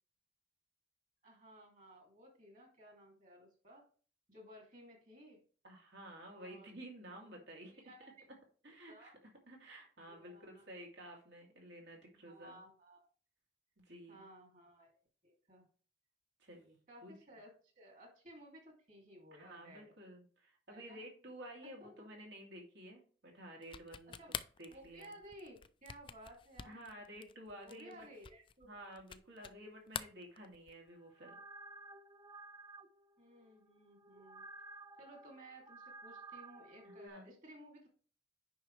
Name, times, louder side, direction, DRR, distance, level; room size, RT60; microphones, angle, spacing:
voice 1, 1.2-3.9 4.3-5.4 6.3-6.7 7.7-8.3 8.9-9.2 10.0-10.6 12.3-13.1 14.1-15.0 15.2-15.7 16.9-19.9 20.7-21.0 21.6-22.1 24.1-24.3 24.7-26.8 27.6-28.7 33.2-34.5 35.0-37.9, right 1 dB, 45° right, 1 dB, 2.8 m, -57 dB
voice 2, 5.6-7.9 8.6-12.6 13.8-14.2 16.4-17.1 19.4-24.2 24.6-25.2 26.6-28.1 28.6-31.4 36.8-37.4, right 1 dB, 75° right, 0 dB, 2.9 m, -52 dB
sound 1, 23.6-29.6 29.9-30.9, left 7 dB, 30° left, 0.4 m, -47 dB
sound 2, 30.9-37.1, right 3 dB, 20° right, 0.6 m, -54 dB
9.2 x 5.5 x 3.3 m, 0.40 s
head